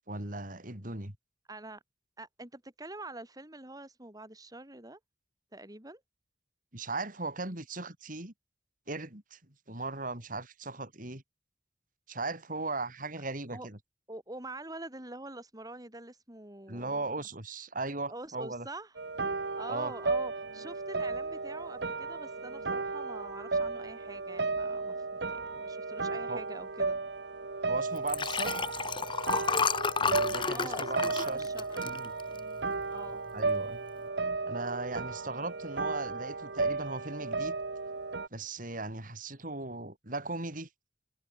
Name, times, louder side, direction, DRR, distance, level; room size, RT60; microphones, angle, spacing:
voice 1, 0.1-1.1 6.7-8.3 8.9-9.4 9.7-11.2 12.1-13.8 16.7-18.7 19.7-19.9 26.3-26.4 27.6-28.5 30.0-31.5 31.8-32.1 33.3-33.8 34.5-37.5 38.3-40.7, right 3 dB, 50° right, 5.1 m, -37 dB
voice 2, 1.5-1.8 2.2-5.0 5.5-6.0 13.5-13.7 14.1-17.0 18.1-18.9 19.6-27.0 30.5-32.0 32.9-33.2, right 2 dB, 20° right, 4.1 m, -45 dB
sound 1, 19.0-38.3, right 3 dB, 85° right, 1.4 m, -34 dB
Liquid, 28.0-32.6 33.1-33.4 33.6-33.7, left 5 dB, 30° left, 1.3 m, -31 dB
head